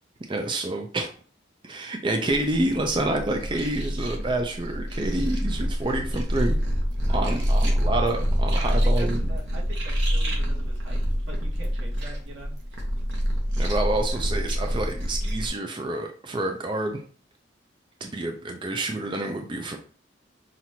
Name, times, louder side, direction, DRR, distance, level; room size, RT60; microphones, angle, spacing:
voice 1, 0.3-1.1 1.6-6.6 7.1-9.2 13.6-17.0 18.0-19.8, right 2 dB, 25° right, 3 dB, 0.4 m, -28 dB
sound 1, 2.3-15.5, equal, 70° right, 1.1 m, -26 dB
voice 2, 3.2-3.7 7.1-7.5 8.5-13.2, right 1 dB, 90° right, -2 dB, 1.6 m, -43 dB
5.7 x 2.5 x 2.8 m, 0.43 s
head